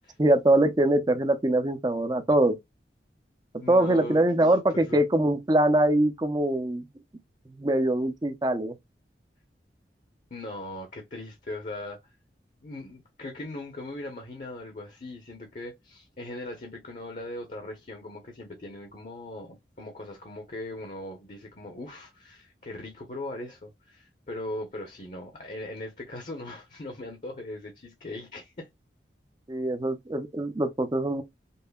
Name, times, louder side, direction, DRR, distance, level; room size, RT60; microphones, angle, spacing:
voice 1, 0.2-2.6 3.7-6.9 7.5-8.8 29.5-31.2, right 1 dB, 20° right, 0.5 m, -23 dB
voice 2, 3.6-4.2 4.7-5.0 10.3-12.1 12.6-28.7, left 1 dB, 45° left, 0.8 m, -39 dB
5.4 x 2.1 x 2.3 m
head